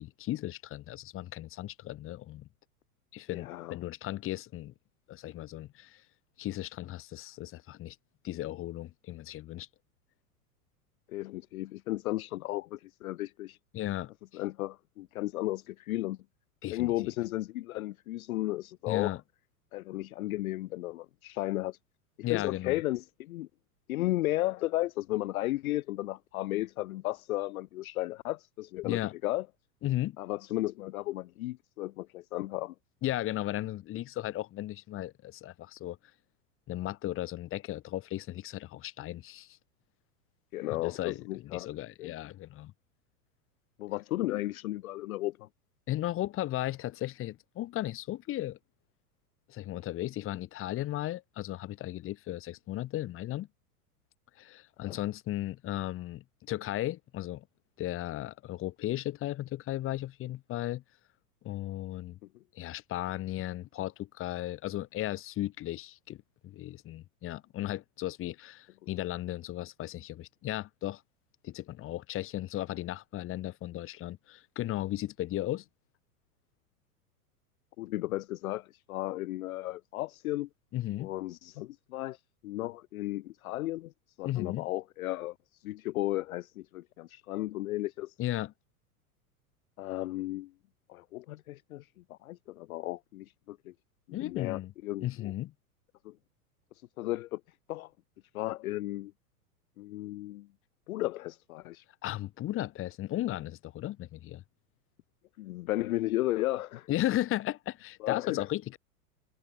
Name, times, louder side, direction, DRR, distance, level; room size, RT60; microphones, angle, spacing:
voice 1, 0.0-2.5 3.1-4.7 5.1-6.0 6.4-8.0 8.2-9.7 13.7-14.1 16.6-16.9 18.9-19.2 22.2-22.8 28.8-29.1 29.8-30.2 33.0-36.0 36.7-39.6 40.7-42.7 45.9-48.6 49.5-53.5 54.4-57.4 57.8-60.8 61.4-62.2 62.5-66.2 66.4-71.0 71.4-75.6 80.7-81.1 84.2-84.7 88.2-88.5 94.1-94.7 95.0-95.5 102.0-104.4 106.9-108.8, left 14 dB, 30° left, 1.1 m, -35 dB
voice 2, 3.3-3.7 11.1-13.6 14.3-16.2 16.7-19.2 19.7-21.8 22.3-23.5 23.9-29.5 30.2-32.7 40.5-41.7 42.0-42.1 43.8-45.5 54.8-55.0 77.8-80.5 81.0-82.2 82.4-83.9 84.2-85.3 85.6-88.1 89.8-90.5 90.9-93.7 94.1-95.3 96.0-96.1 97.0-97.4 97.7-97.9 98.3-99.1 99.8-100.5 100.9-101.8 105.4-106.9 108.0-108.5, left 17 dB, 70° left, 0.5 m, -34 dB
hypercardioid pair, 95°, 45 cm